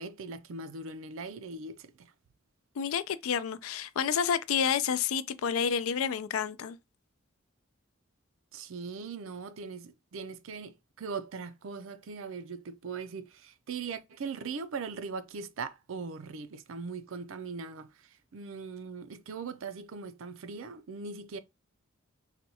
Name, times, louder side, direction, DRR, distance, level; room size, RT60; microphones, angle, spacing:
voice 1, 0.0-2.1 8.5-17.9 18.3-21.4, right 4 dB, 70° right, 0.5 m, -40 dB
voice 2, 2.8-6.8, left 7 dB, 80° left, 0.4 m, -29 dB
4.2 x 2.2 x 2.8 m
head